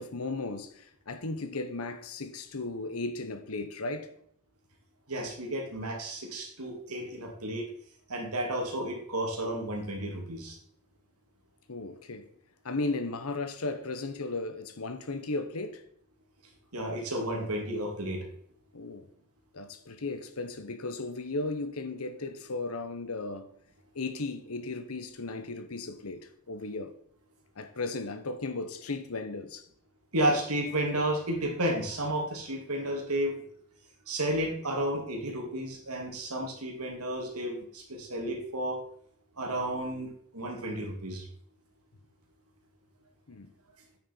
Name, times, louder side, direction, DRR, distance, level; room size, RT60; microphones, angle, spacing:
voice 1, 0.0-4.1 11.7-12.3 12.6-15.8 18.7-19.1 19.5-23.5 23.9-26.9 27.6-29.6 43.3-43.5, left 3 dB, 75° left, 1.0 m, -35 dB
voice 2, 5.1-7.7 8.1-10.6 16.7-18.3 30.1-33.4 34.1-38.8 39.4-41.2, right 1 dB, 85° right, 2.5 m, -32 dB
8.9 x 6.6 x 4.4 m
head